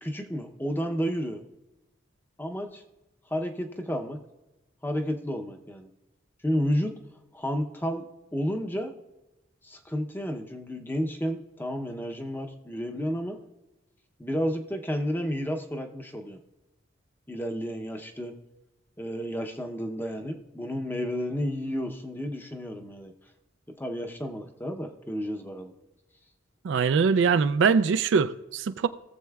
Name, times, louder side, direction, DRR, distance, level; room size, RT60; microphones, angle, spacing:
voice 1, 0.0-1.4 2.4-2.8 3.3-4.2 4.8-5.9 6.4-6.9 7.3-8.9 9.6-13.4 14.2-16.4 17.3-18.3 19.0-23.1 23.8-25.7, equal, 10° left, 0.6 m, -31 dB
voice 2, 26.6-28.9, right 5 dB, 65° right, 0.3 m, -22 dB
18.5 x 7.4 x 2.3 m
head